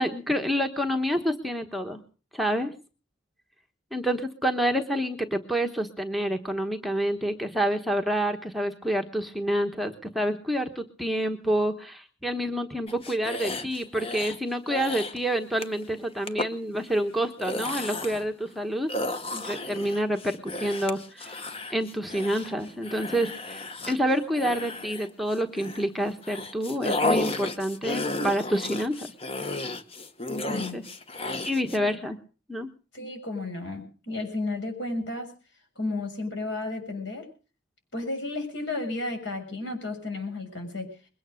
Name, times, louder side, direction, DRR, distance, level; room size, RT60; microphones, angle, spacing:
voice 1, 0.0-2.0 2.3-2.7 3.9-18.9 19.3-21.3 21.7-29.1 30.3-30.8 31.5-32.2 32.5-32.7, equal, ahead, 3 dB, 1.0 m, -28 dB
sound 1, 12.9-14.4 14.7-15.2 15.6-15.8 16.3-16.5 17.2-18.3 18.9-25.9 26.2-31.8, left 2 dB, 30° left, 1.0 m, -33 dB
voice 2, 30.5-30.8 31.8-31.9 32.9-35.3 35.8-37.3 37.9-40.9, left 2 dB, 65° left, 4 dB, 6.6 m, -33 dB
21.5 x 9.3 x 6.4 m, 0.39 s
head